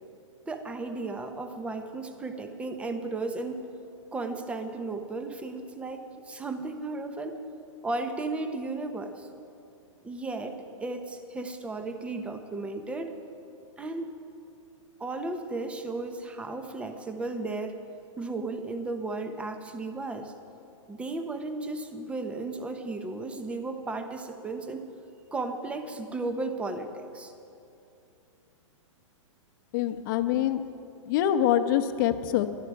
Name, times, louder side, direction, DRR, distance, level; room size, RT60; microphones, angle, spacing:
voice 1, 0.5-3.6 4.1-7.4 7.8-9.3 10.0-13.1 13.8-14.1 15.0-17.8 18.2-20.3 20.9-24.8 25.3-27.3, right 3 dB, 5° right, 7 dB, 0.9 m, -34 dB
voice 2, 29.7-30.6 31.1-32.5, left 11 dB, 40° left, 9 dB, 1.0 m, -25 dB
24.0 x 11.5 x 4.8 m, 2.6 s
hypercardioid pair, 150°, 17 cm